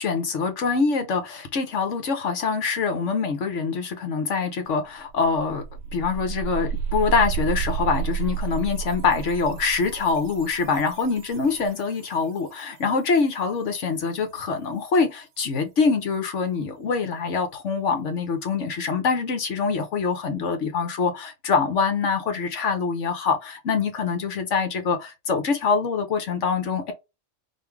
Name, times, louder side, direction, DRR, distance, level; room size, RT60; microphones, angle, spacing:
voice 1, 0.0-5.6 5.9-26.9, left 5 dB, 70° left, 1.2 m, -24 dB
sound 1, 4.7-4.8 5.1-11.9, right 7 dB, 80° right, 0.9 m, -31 dB
5.3 x 2.6 x 3.3 m
omnidirectional pair, 1.3 m